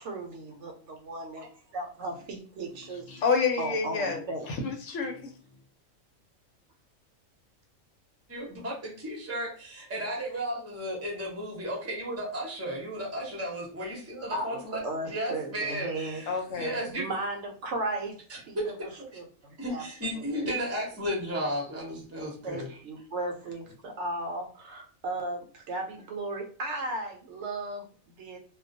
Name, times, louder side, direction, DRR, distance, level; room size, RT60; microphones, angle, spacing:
voice 1, 0.0-3.0 3.6-4.5 14.3-16.2 17.0-18.1 18.5-18.7 19.1-19.8 20.1-20.5 22.4-28.4, right 2 dB, 70° right, 2 dB, 0.8 m, -36 dB
voice 2, 3.1-4.2 4.5-5.3 16.3-16.8, left 5 dB, 75° left, 3 dB, 1.0 m, -28 dB
voice 3, 8.3-17.1 18.6-18.7 19.6-22.7, equal, 15° right, -2 dB, 0.6 m, -34 dB
2.3 x 2.2 x 2.5 m, 0.43 s
omnidirectional pair, 1.4 m